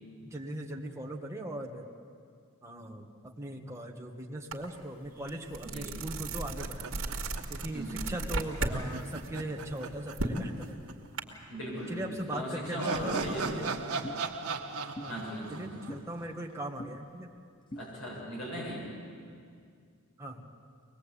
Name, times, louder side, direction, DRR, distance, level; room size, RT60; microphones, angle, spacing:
voice 1, 0.2-1.9 2.6-7.0 7.5-10.8 11.9-13.7 15.0-15.2 15.5-17.3 20.2-20.4, right 1 dB, 15° right, 0 dB, 1.6 m, -39 dB
sound 1, 4.5-4.6 5.0-8.8 9.1-11.2, right 2 dB, 65° right, 2.2 m, -35 dB
sound 2, 6.6-7.9 8.2-8.3 8.7-10.9 11.2-11.3 12.3-16.6, right 4 dB, 80° right, 1.4 m, -38 dB
voice 2, 7.7-8.2 11.5-13.7 15.1-15.7 17.8-18.8, equal, 60° left, -4 dB, 7.4 m, -38 dB
sound 3, 13.1-13.3 14.0-14.2 15.0-15.1 15.9-16.0 16.8-16.9 17.7-17.9, equal, 20° left, 0.6 m, -41 dB
23.5 x 20.5 x 8.6 m, 2.3 s
head